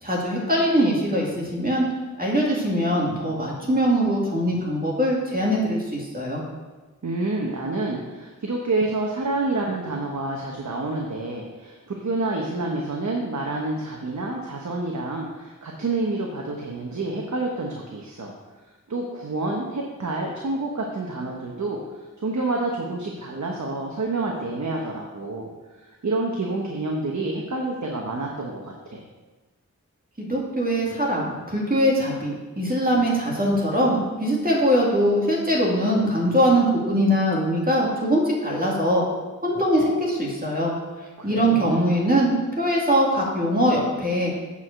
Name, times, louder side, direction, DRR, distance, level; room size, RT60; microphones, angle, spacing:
voice 1, 0.0-1.8 2.2-6.4 30.2-39.0 39.4-40.7 41.2-44.3, equal, 30° right, -3 dB, 2.4 m, -22 dB
voice 2, 7.0-18.3 18.9-21.8 22.2-25.5 26.0-29.0 41.2-41.8, right 2 dB, 65° right, -1 dB, 1.2 m, -28 dB
8.3 x 4.9 x 6.6 m, 1.2 s
cardioid pair, 50°, 31 cm